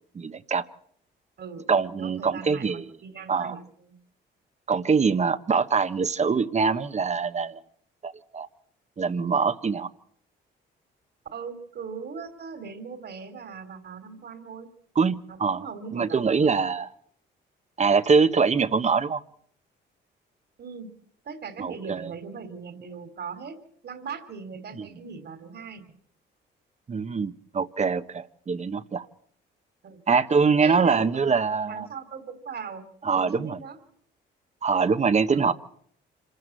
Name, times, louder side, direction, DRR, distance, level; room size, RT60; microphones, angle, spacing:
voice 1, 0.1-0.6 1.7-2.8 3.3-3.6 4.7-7.6 8.0-8.5 9.0-9.9 15.0-15.6 15.9-16.9 17.8-19.2 21.6-22.1 24.8-24.9 26.9-29.1 30.1-31.9 33.0-33.6 34.6-35.5, right 5 dB, 35° right, 1.2 m, -24 dB
voice 2, 2.0-3.9 11.3-14.7 15.3-16.7 20.6-20.9 21.2-25.8 29.8-30.0 30.6-31.3 31.7-32.8 33.2-33.8 35.3-35.5, right 5 dB, 55° right, 3.2 m, -39 dB
26.5 x 13.5 x 7.8 m
cardioid pair, 90°, 20 cm